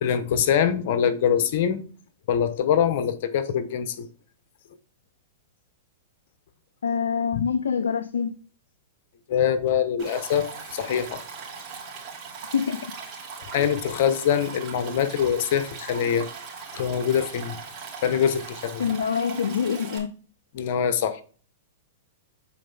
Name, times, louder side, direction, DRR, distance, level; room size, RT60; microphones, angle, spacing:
voice 1, 0.0-1.8 2.3-4.1 7.3-7.4 9.3-11.2 13.5-16.3 16.7-17.6 18.0-18.8 20.5-21.2, left 8 dB, 55° left, 1.0 m, -24 dB
voice 2, 6.8-8.4 12.5-12.9 13.6-13.7 18.8-20.1, left 7 dB, 85° left, 0.5 m, -25 dB
Stream, 10.0-20.0, right 5 dB, 35° right, 2.6 m, -40 dB
7.6 x 4.2 x 3.5 m
hypercardioid pair, 120°, 0 cm